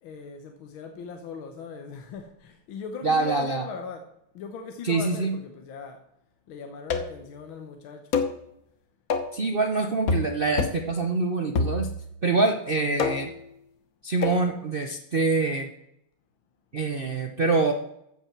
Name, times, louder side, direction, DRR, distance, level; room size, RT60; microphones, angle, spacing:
voice 1, 0.0-6.1 6.5-8.2 12.8-13.2, left 5 dB, 75° left, 1.8 m, -40 dB
voice 2, 3.0-3.6 4.8-5.4 9.3-11.9 12.2-13.3 14.0-15.7 16.7-17.7, right 3 dB, 80° right, 0.5 m, -25 dB
sound 1, 6.9-7.3 8.1-8.4 9.1-9.4 10.1-10.3 10.6-10.9 11.5-12.1 13.0-13.4 14.2-14.4, left 4 dB, 50° left, 1.3 m, -27 dB
14.5 x 5.6 x 5.9 m
omnidirectional pair, 2.3 m